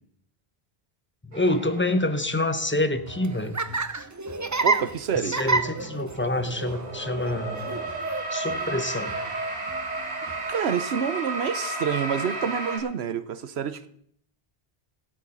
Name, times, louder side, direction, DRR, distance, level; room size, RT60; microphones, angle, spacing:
voice 1, 1.2-3.6 5.2-7.8 8.3-9.2, left 2 dB, 10° left, 0.9 m, -27 dB
sound 1, 1.3-2.5 3.3-3.4 4.9-12.8, right 2 dB, 40° right, 2.1 m, -33 dB
Laughter, 3.0-10.5, right 3 dB, 25° right, 0.4 m, -31 dB
voice 2, 4.6-5.4 10.5-13.9, right 7 dB, 85° right, 1.1 m, -28 dB
16.5 x 8.5 x 5.5 m
omnidirectional pair, 1.0 m